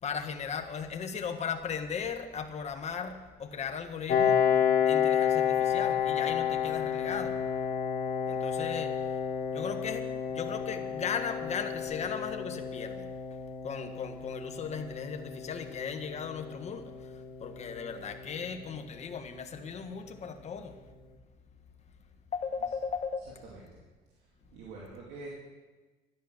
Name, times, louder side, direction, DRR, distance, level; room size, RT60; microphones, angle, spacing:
voice 1, 0.0-7.5 8.3-9.2 9.5-13.4 13.6-20.8 22.3-23.2, left 6 dB, 40° left, 6 dB, 1.4 m, -37 dB
Piano, 4.1-19.4, left 8 dB, 55° left, 1.4 m, -31 dB
voice 2, 23.4-23.8 24.5-25.3, right 3 dB, 85° right, -4 dB, 2.5 m, -45 dB
12.5 x 10.5 x 6.4 m, 1.2 s
cardioid pair, 110°, 17 cm